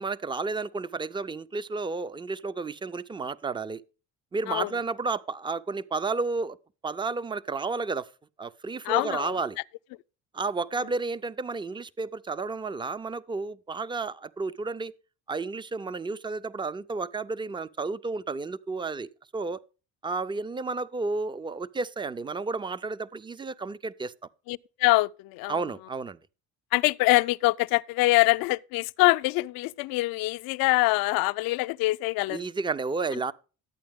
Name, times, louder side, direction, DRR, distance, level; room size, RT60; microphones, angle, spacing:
voice 1, 0.0-3.8 4.3-6.6 6.8-8.1 8.4-9.6 10.3-14.9 15.3-19.6 20.0-24.1 25.5-26.2 32.3-33.3, right 4 dB, 15° right, 0.4 m, -32 dB
voice 2, 8.8-9.3 24.5-25.6 26.7-32.4, left 21 dB, 70° left, 0.5 m, -24 dB
11.5 x 8.6 x 3.5 m
cardioid pair, 110°, 37 cm